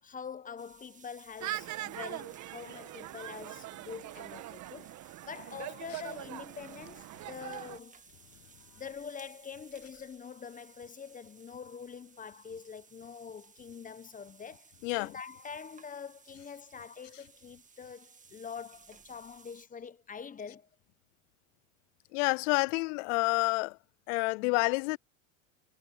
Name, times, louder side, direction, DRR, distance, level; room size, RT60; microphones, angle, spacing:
voice 1, 0.0-8.0 8.8-20.7, left 6 dB, 20° left, 1.1 m, -45 dB
sound 1, 0.6-19.6, right 5 dB, 20° right, 1.9 m, -59 dB
sound 2, 1.4-7.8, right 15 dB, 45° right, 1.6 m, -42 dB
voice 2, 14.8-15.1 22.1-23.8 24.1-25.0, left 27 dB, 60° left, 0.6 m, -28 dB
supercardioid pair, 110°, 42 cm